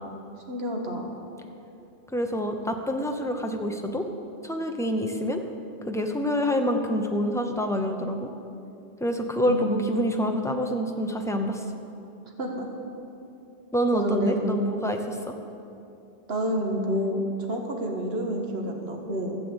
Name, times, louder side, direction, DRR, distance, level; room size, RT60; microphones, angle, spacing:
voice 1, 0.5-1.1 9.5-10.1 12.4-12.7 13.9-14.3 16.3-19.4, right 1 dB, 70° right, 1 dB, 1.8 m, -29 dB
voice 2, 2.1-4.1 4.4-5.4 5.9-8.3 9.0-11.6 13.7-15.4, equal, 5° left, 3 dB, 0.8 m, -27 dB
14.0 x 7.0 x 8.0 m, 2.7 s
omnidirectional pair, 1.1 m